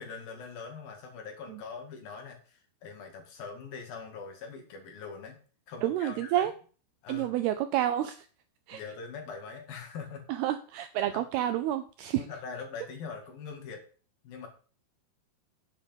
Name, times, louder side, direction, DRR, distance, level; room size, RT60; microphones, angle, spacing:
voice 1, 0.0-5.4 5.7-6.5 7.0-7.4 8.7-10.2 11.1-11.2 12.1-13.8 14.2-14.5, left 5 dB, 55° left, 3 dB, 3.5 m, -42 dB
voice 2, 5.8-6.5 7.1-8.3 8.7-8.8 10.3-12.3, right 12 dB, 85° right, 9 dB, 2.2 m, -29 dB
10.0 x 8.1 x 5.4 m, 0.39 s
omnidirectional pair, 5.3 m